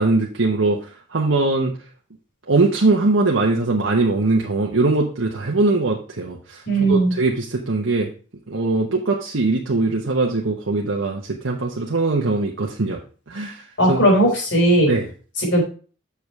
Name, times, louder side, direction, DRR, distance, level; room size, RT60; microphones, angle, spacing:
voice 1, 0.0-1.7 2.5-8.1 8.5-13.0 13.3-14.0 14.8-15.1, right 3 dB, 85° right, -1 dB, 1.0 m, -21 dB
voice 2, 6.7-7.1 13.8-14.9 15.4-15.6, right 1 dB, 75° left, -1 dB, 4.2 m, -17 dB
7.0 x 5.2 x 4.6 m, 0.38 s
head